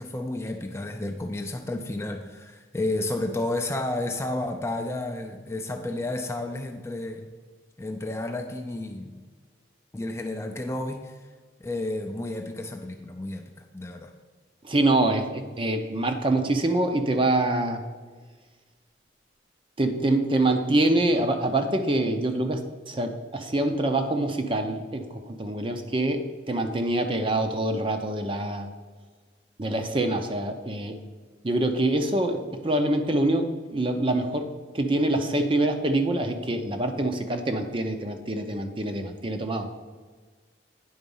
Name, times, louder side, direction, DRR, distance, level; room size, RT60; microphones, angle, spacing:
voice 1, 0.0-7.3 7.8-9.1 9.9-11.2 11.6-14.1, left 2 dB, 15° left, 4 dB, 0.4 m, -31 dB
voice 2, 14.6-17.8 19.8-28.7 29.6-31.0 31.4-34.5 34.7-39.7, right 2 dB, 25° right, 6 dB, 0.6 m, -25 dB
9.5 x 3.9 x 5.4 m, 1.4 s
head